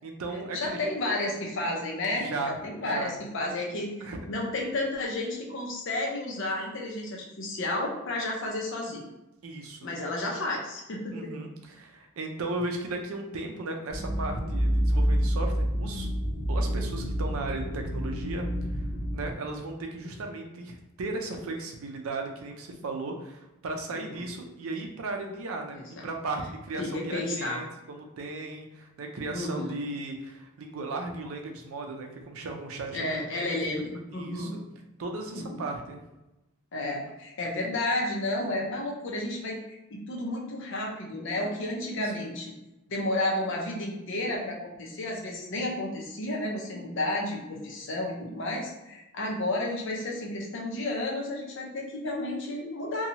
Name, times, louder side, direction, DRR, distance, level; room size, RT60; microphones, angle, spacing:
voice 1, 0.0-0.8 2.1-3.2 4.0-4.2 9.4-9.9 11.1-16.1 16.5-18.5 18.7-18.8 19.1-33.0 33.3-34.6 35.0-36.0 42.2-42.3, right 2 dB, 80° right, 3 dB, 0.5 m, -36 dB
voice 2, 0.5-2.3 2.6-3.9 4.3-9.1 9.8-11.3 23.9-24.2 25.7-26.1 26.8-27.6 29.3-29.7 32.9-34.5 35.3-35.6 36.7-42.5 42.9-53.1, left 1 dB, 60° left, -1 dB, 0.6 m, -32 dB
sound 1, 13.9-19.3, equal, 30° right, 1.1 m, -28 dB
2.7 x 2.3 x 2.8 m, 0.98 s
head